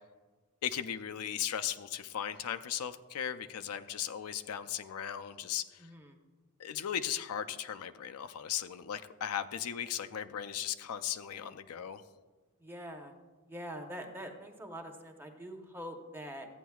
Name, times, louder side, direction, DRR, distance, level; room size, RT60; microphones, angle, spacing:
voice 1, 0.6-5.9 6.6-12.0, left 9 dB, 75° left, 9 dB, 0.4 m, -37 dB
voice 2, 5.8-6.2 12.6-13.1 13.5-16.5, equal, 10° right, 3 dB, 0.9 m, -44 dB
14.5 x 9.0 x 2.3 m, 1.3 s
head